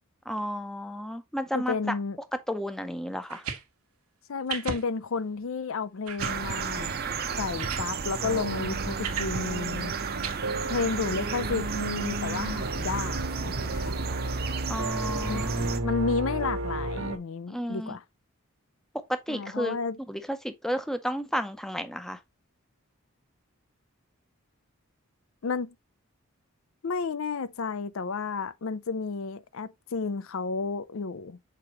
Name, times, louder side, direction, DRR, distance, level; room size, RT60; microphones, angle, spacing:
voice 1, 0.3-1.8 2.5-3.4 14.7-15.8 17.5-18.0 19.3-19.8 20.1-22.2, equal, ahead, 0.6 m, -32 dB
voice 2, 1.5-2.2 4.3-7.0 7.4-9.9 10.7-14.0 15.3-15.4 15.8-18.0 19.3-20.0 25.4-25.7 26.8-31.4, left 4 dB, 65° left, 0.5 m, -32 dB
sound 1, 3.2-3.6 4.5-4.8 5.3-5.4 6.1-6.4 7.2-7.3 7.6-7.9 9.0-9.3 10.2-10.3, right 6 dB, 90° right, 1.2 m, -34 dB
sound 2, 6.2-15.8, right 5 dB, 45° right, 0.7 m, -33 dB
sound 3, 8.2-17.2, right 2 dB, 60° right, 1.1 m, -33 dB
6.7 x 4.7 x 3.0 m
head